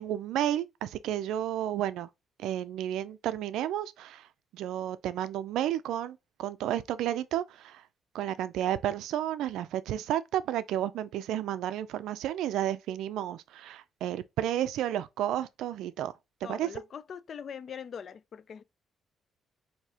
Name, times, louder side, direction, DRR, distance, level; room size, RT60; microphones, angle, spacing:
voice 1, 0.0-2.1 2.4-4.3 4.5-7.8 8.1-16.1 16.5-16.7, right 11 dB, 85° right, 0.3 m, -32 dB
voice 2, 16.4-18.6, left 7 dB, 55° left, 0.3 m, -42 dB
4.7 x 2.8 x 2.8 m
cardioid pair, 90°, 0 cm